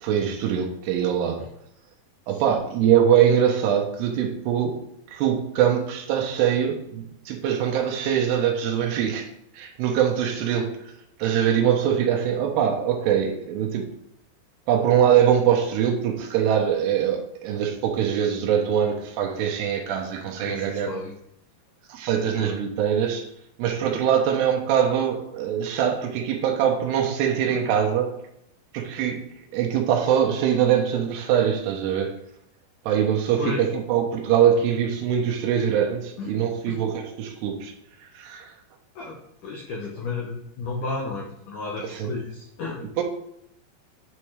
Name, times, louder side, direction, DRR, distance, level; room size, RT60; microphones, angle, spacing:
voice 1, 0.0-1.4 2.3-4.8 5.1-9.3 9.5-10.8 11.2-13.9 14.7-20.9 21.9-23.3 23.6-28.2 28.7-29.3 29.5-32.2 32.9-37.7 38.1-38.5 41.8-42.1 43.0-43.1, right 9 dB, 80° right, 2 dB, 2.9 m, -23 dB
voice 2, 2.3-2.6 20.4-21.1 22.4-22.6 27.5-27.6 33.4-33.7 36.2-36.3 36.7-36.8 39.0-42.8, left 4 dB, 85° left, -1 dB, 1.8 m, -33 dB
9.7 x 4.4 x 3.2 m, 0.77 s
omnidirectional pair, 4.9 m